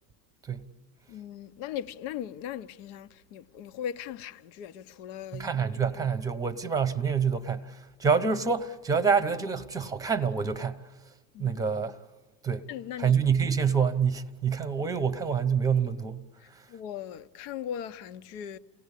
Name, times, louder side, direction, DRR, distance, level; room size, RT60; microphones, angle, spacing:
voice 1, 1.1-5.8 11.3-11.6 12.7-13.2 16.4-18.6, left 9 dB, 65° left, 1.0 m, -39 dB
voice 2, 5.3-10.8 11.4-11.9 12.4-12.7 13.0-16.6, right 6 dB, 5° right, 0.9 m, -27 dB
28.5 x 17.5 x 8.4 m
supercardioid pair, 120°, 48 cm